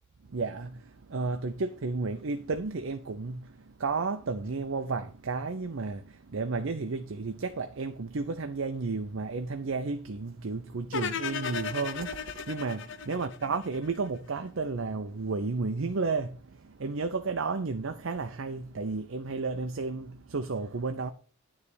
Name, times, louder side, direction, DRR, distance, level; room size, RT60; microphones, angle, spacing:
voice 1, 0.3-3.5 3.8-21.1, right 4 dB, 65° right, 0.6 m, -32 dB
sound 1, 10.9-14.1, left 6 dB, 60° left, 0.8 m, -35 dB
9.6 x 3.3 x 6.8 m
head